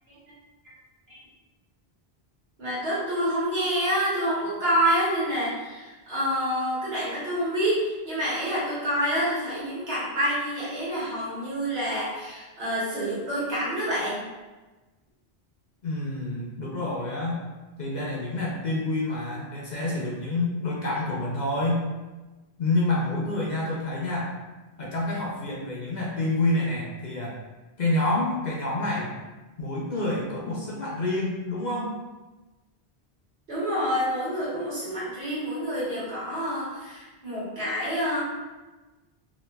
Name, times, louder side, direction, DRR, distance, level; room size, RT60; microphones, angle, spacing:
voice 1, 2.6-14.2 33.5-38.2, equal, 75° right, -9 dB, 1.6 m, -27 dB
voice 2, 15.8-17.4 17.8-21.8 22.6-24.3 24.8-27.4 27.8-29.1 29.6-31.9, left 2 dB, 55° left, -4 dB, 0.6 m, -28 dB
3.1 x 2.4 x 3.3 m, 1.2 s
omnidirectional pair, 1.1 m